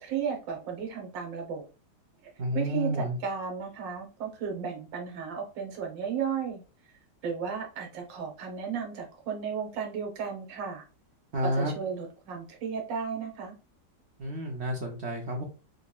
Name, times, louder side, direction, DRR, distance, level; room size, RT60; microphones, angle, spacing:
voice 1, 0.0-1.7 2.5-6.6 7.2-10.8 11.4-13.5, right 6 dB, 90° right, 1 dB, 1.6 m, -34 dB
voice 2, 2.4-3.2 11.3-11.7 14.2-15.4, equal, 70° right, 1 dB, 0.6 m, -30 dB
3.8 x 3.0 x 2.2 m, 0.33 s
omnidirectional pair, 1.9 m